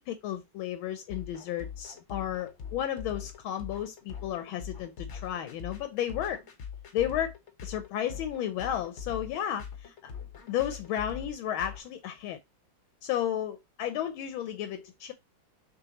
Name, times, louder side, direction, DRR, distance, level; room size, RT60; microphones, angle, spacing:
voice 1, 0.0-6.4 6.9-7.3 7.6-10.1 10.5-12.4 13.0-15.1, left 10 dB, 75° left, 1.3 m, -33 dB
sound 1, 1.1-11.8, left 7 dB, 55° left, 0.8 m, -42 dB
6.3 x 3.0 x 2.8 m
omnidirectional pair, 2.3 m